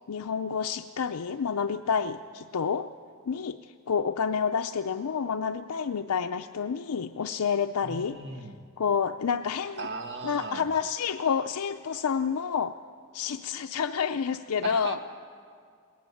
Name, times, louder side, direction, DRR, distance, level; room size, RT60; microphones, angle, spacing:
voice 1, 0.1-2.9 3.3-8.2 8.8-9.9 10.2-12.8 13.1-15.0, left 6 dB, 80° left, 7 dB, 0.5 m, -29 dB
voice 2, 7.8-8.6 9.8-10.6 14.6-15.0, right 3 dB, 50° right, 5 dB, 1.8 m, -37 dB
22.0 x 18.5 x 8.5 m, 2.2 s
head